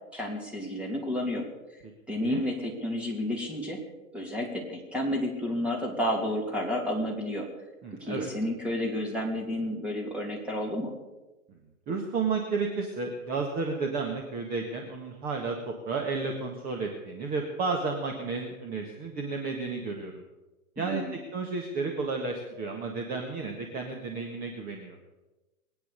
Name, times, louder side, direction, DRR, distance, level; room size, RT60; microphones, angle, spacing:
voice 1, 0.1-1.4 2.1-3.8 4.1-7.5 8.0-10.9 20.8-21.1, left 1 dB, 5° right, -1 dB, 2.9 m, -31 dB
voice 2, 1.8-2.4 7.8-8.3 11.9-20.2 20.8-25.1, right 4 dB, 20° right, 2 dB, 1.6 m, -32 dB
22.0 x 9.7 x 6.7 m, 1.1 s
hypercardioid pair, 145°, 44 cm